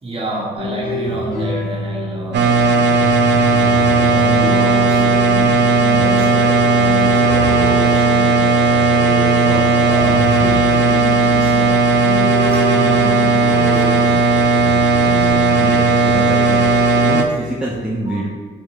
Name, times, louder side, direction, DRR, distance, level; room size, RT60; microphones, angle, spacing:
voice 1, 0.0-14.3 18.1-18.2, equal, 25° right, -3 dB, 1.2 m, -30 dB
sound 1, 0.6-17.6, equal, 90° left, 1.2 m, -27 dB
sound 2, 2.3-17.2, right 3 dB, 65° right, 0.5 m, -15 dB
voice 2, 15.6-16.5 17.0-18.3, right 1 dB, 5° right, -5 dB, 0.6 m, -25 dB
4.4 x 3.5 x 3.0 m, 1.5 s
cardioid pair, 90°, 20 cm